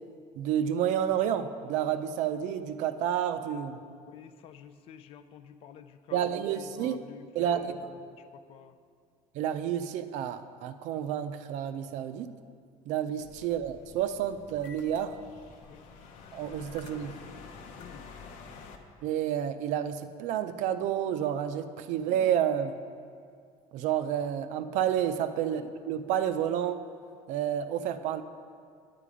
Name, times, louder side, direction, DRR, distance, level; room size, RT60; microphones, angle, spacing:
voice 1, 0.4-3.8 6.1-7.0 7.4-7.8 9.3-12.3 12.9-15.2 16.3-17.1 19.0-22.7 23.7-26.8 27.3-28.2, right 9 dB, 65° right, 10 dB, 0.5 m, -30 dB
voice 2, 3.8-8.8 15.7-15.8 17.8-18.3 25.4-25.7, left 8 dB, 45° left, 11 dB, 0.4 m, -50 dB
sound 1, 13.2-18.8, left 5 dB, 75° left, 0.9 m, -49 dB
9.2 x 8.5 x 4.9 m, 2.2 s
cardioid pair, 175°, 13 cm